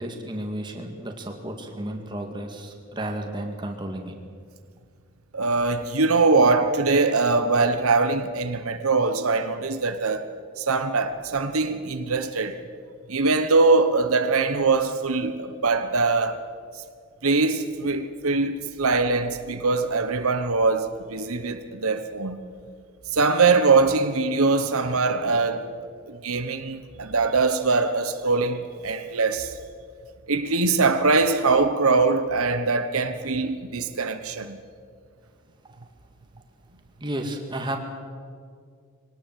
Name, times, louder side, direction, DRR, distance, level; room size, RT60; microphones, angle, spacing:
voice 1, 0.0-4.2 37.0-37.8, right 1 dB, 20° right, 2.1 m, -32 dB
voice 2, 5.3-10.3 10.6-12.6 13.1-16.4 17.2-22.4 23.1-25.7 26.1-29.6 30.3-34.6, right 3 dB, 85° right, 1.2 m, -22 dB
22.5 x 18.5 x 7.6 m
head